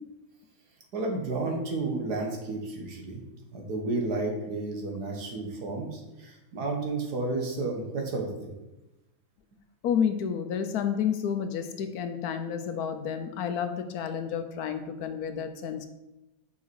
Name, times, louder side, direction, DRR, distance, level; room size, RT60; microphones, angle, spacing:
voice 1, 0.9-3.2 3.5-8.5, right 3 dB, 75° right, 1 dB, 1.9 m, -32 dB
voice 2, 9.8-15.9, left 7 dB, 75° left, 8 dB, 1.1 m, -30 dB
6.2 x 5.6 x 4.7 m, 0.98 s
omnidirectional pair, 1.7 m